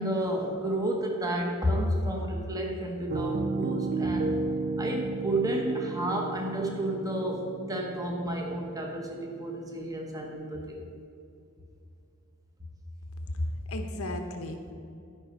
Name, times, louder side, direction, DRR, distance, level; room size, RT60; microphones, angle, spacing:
voice 1, 0.0-4.3 4.8-10.8, right 1 dB, 15° right, 1 dB, 1.0 m, -31 dB
Piano, 3.1-11.0, right 3 dB, 40° right, 0.3 m, -34 dB
voice 2, 13.3-14.7, left 1 dB, 65° left, 6 dB, 1.0 m, -33 dB
12.5 x 5.2 x 5.3 m, 2.6 s
head